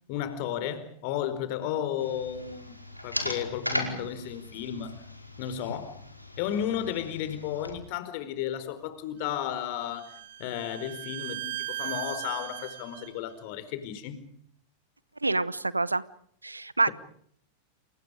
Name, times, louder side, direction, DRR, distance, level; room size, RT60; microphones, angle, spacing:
voice 1, 0.1-2.7 3.0-5.0 5.4-6.0 6.4-10.1 10.4-14.2, left 10 dB, 45° left, 4.5 m, -33 dB
sound 1, 2.0-7.7, left 1 dB, 90° left, 5.0 m, -37 dB
Bowed string instrument, 9.3-13.1, right 14 dB, 55° right, 1.6 m, -38 dB
voice 2, 15.2-16.0 16.4-16.9, right 2 dB, 80° right, 1.1 m, -26 dB
29.5 x 29.0 x 5.1 m
figure-of-eight pair, 90°, 0 cm